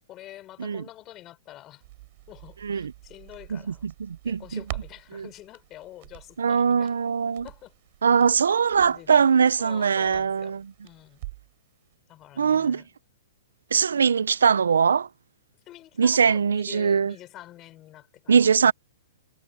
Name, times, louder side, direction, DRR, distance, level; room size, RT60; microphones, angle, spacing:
voice 1, 0.0-1.8 2.3-3.9 4.2-6.9 7.4-7.7 8.8-9.2 9.6-11.2 12.1-12.9 15.7-18.5, left 14 dB, 30° left, 5.3 m, -46 dB
Crackle, 1.8-11.6 11.9-12.0, right 20 dB, 50° right, 3.8 m, -45 dB
voice 2, 3.5-4.6 5.1-5.3 6.4-7.4 8.0-10.6 12.4-12.8 13.7-15.1 16.0-17.1 18.3-18.7, right 6 dB, 85° right, 0.7 m, -21 dB
hypercardioid pair, 130°, 0 cm